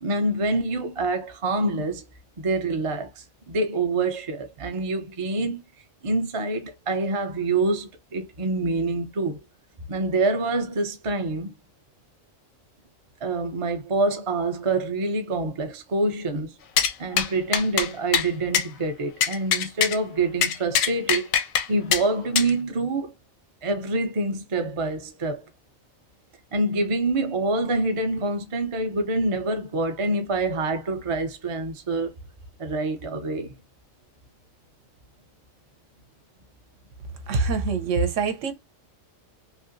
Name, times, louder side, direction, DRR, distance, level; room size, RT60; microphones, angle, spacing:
voice 1, 0.0-2.0 2.4-3.1 3.5-5.6 6.0-9.4 9.9-11.5 13.2-16.5 17.0-21.3 21.7-23.1 23.6-25.4 26.5-32.1 32.6-33.5, right 2 dB, 35° right, 0.5 m, -26 dB
sound 1, 16.8-16.9 17.2-17.3 17.5-17.9 18.1-18.3 18.5-18.7 19.2-20.0 20.4-21.7 21.9-22.0 22.4-22.5, left 8 dB, 90° left, 1.0 m, -22 dB
voice 2, 37.3-38.5, right 4 dB, 70° right, 1.0 m, -24 dB
3.2 x 2.7 x 2.5 m
omnidirectional pair, 1.4 m